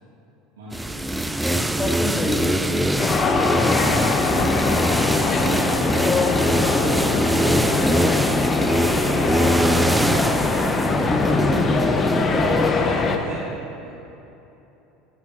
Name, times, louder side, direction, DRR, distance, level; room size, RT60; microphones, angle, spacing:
voice 1, 0.6-1.2 3.3-6.8 7.2-8.2 8.9-9.3 11.3-11.7 12.0-13.5 13.8-13.9, right 2 dB, 80° right, -9 dB, 2.0 m, -35 dB
sound 1, 0.7-12.7, right 1 dB, 5° right, 0.4 m, -23 dB
voice 2, 1.4-2.7 8.0-8.1 10.7-11.5, left 2 dB, 15° left, -3 dB, 2.0 m, -28 dB
sound 2, 3.0-13.2, left 4 dB, 35° left, 0.9 m, -22 dB
17.0 x 8.0 x 2.6 m, 3.0 s
hypercardioid pair, 80°, 0 cm